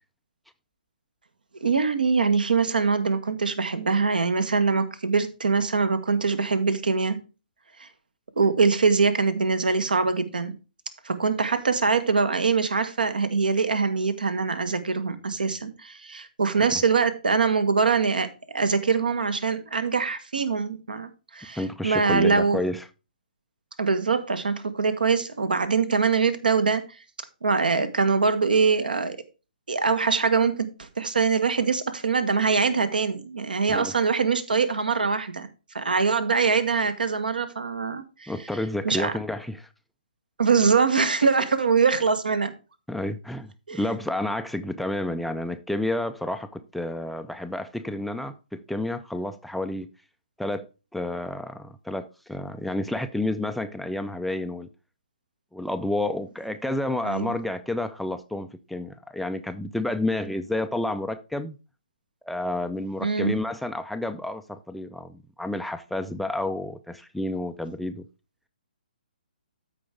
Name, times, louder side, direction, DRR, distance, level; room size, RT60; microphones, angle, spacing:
voice 1, 1.6-7.2 7.8-7.9 8.4-10.5 11.0-22.6 23.8-26.8 27.4-29.2 29.7-35.5 35.7-38.3 38.8-39.1 40.4-42.5 43.7-43.8 57.0-57.3 63.0-63.4, right 5 dB, 70° right, 1.4 m, -23 dB
voice 2, 21.6-22.9 33.7-33.9 38.3-39.7 42.9-49.9 50.4-54.7 55.5-61.6 62.2-68.1, left 1 dB, ahead, 0.4 m, -30 dB
13.5 x 4.6 x 3.4 m
figure-of-eight pair, 135°, 5 cm